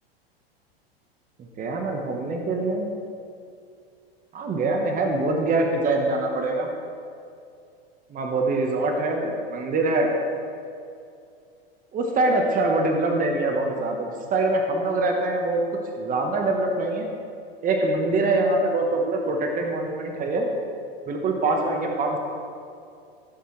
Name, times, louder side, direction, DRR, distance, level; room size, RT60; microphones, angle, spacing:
voice 1, 1.6-2.9 4.3-6.7 8.1-10.1 11.9-15.6 16.0-17.1 17.6-20.5 21.1-22.2, right 2 dB, 25° right, 2 dB, 1.3 m, -24 dB
16.0 x 6.6 x 3.3 m, 2.4 s
hypercardioid pair, 115°, 31 cm